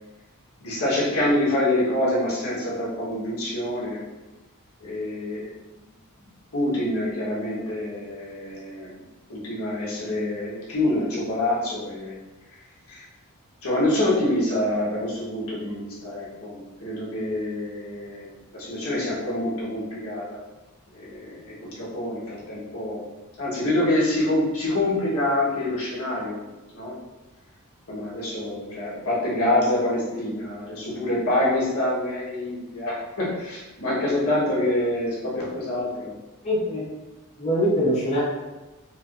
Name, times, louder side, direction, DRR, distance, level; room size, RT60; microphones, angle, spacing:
voice 1, 0.6-4.0 4.8-5.5 5.7-5.8 6.2-9.0 9.3-12.1 12.9-13.0 13.6-20.4 20.9-26.5 26.7-26.9 27.9-36.1, left 1 dB, 70° left, -7 dB, 1.3 m, -26 dB
voice 2, 36.4-36.9 37.4-38.2, equal, 30° left, -8 dB, 0.9 m, -23 dB
4.8 x 2.6 x 2.5 m, 1.1 s
head